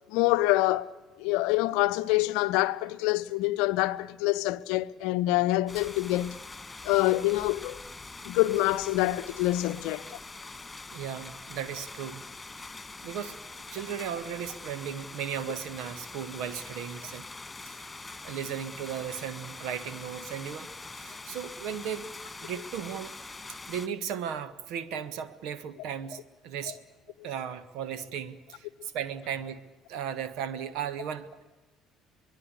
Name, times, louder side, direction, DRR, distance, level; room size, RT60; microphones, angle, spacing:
voice 1, 0.1-0.9 1.2-6.4 6.8-7.8 8.2-10.2, left 18 dB, 65° left, 0.8 m, -26 dB
sound 1, 5.7-23.9, left 3 dB, 15° left, 2.4 m, -44 dB
voice 2, 10.9-12.3 13.0-17.3 17.6-17.9 18.2-22.1 22.4-23.1 23.5-26.8 27.2-29.6 29.9-31.4, right 8 dB, 60° right, 1.4 m, -36 dB
24.0 x 21.5 x 8.4 m
figure-of-eight pair, 55°, 0 cm